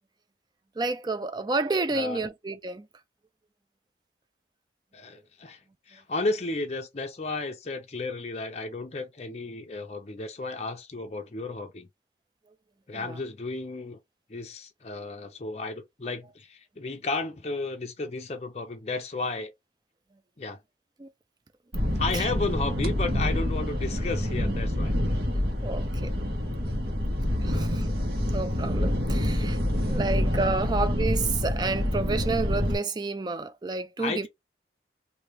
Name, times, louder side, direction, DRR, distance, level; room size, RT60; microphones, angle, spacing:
voice 1, 0.8-2.9 12.9-13.2 21.0-21.1 22.1-22.3 25.6-26.1 27.4-27.9 28.2-34.3, right 3 dB, 25° right, 0.4 m, -30 dB
voice 2, 1.9-2.3 4.9-11.9 12.9-14.0 14.3-19.5 20.4-20.6 21.9-25.0 27.5-27.7 29.4-29.5 34.0-34.3, left 3 dB, 35° left, 0.5 m, -33 dB
sound 1, 21.7-32.8, left 1 dB, 65° right, 1.3 m, -27 dB
3.4 x 2.7 x 3.0 m
head